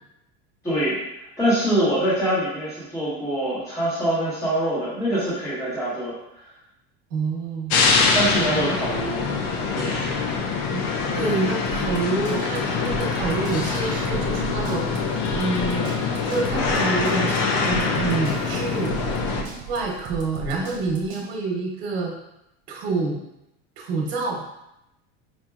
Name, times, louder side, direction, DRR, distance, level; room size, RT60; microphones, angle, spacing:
voice 1, 0.6-1.0 1.4-6.1 8.0-9.2 9.7-10.1, right 1 dB, 10° left, -13 dB, 1.4 m, -24 dB
voice 2, 7.1-7.9 8.5-8.8 10.7-10.8 11.1-15.9 16.3-19.0 19.7-22.1 22.7-23.2 23.8-24.4, right 3 dB, 85° right, -2 dB, 1.0 m, -27 dB
sound 1, 7.7-19.4, left 4 dB, 45° left, 0.5 m, -24 dB
sound 2, 11.7-21.3, right 7 dB, 25° right, 0.4 m, -37 dB
4.5 x 2.7 x 2.3 m, 0.86 s
supercardioid pair, 160°, 30 cm